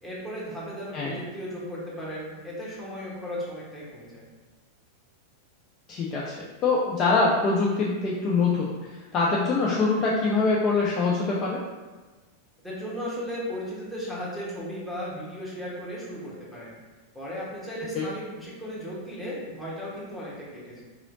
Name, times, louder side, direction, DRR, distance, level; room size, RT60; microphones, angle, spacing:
voice 1, 0.0-4.3 12.6-16.7 17.1-20.8, equal, 5° left, -8 dB, 1.2 m, -36 dB
voice 2, 5.9-8.7 9.1-11.6 18.0-18.1, left 3 dB, 30° left, -4 dB, 0.4 m, -24 dB
3.8 x 3.0 x 2.6 m, 1.3 s
figure-of-eight pair, 90°, 0 cm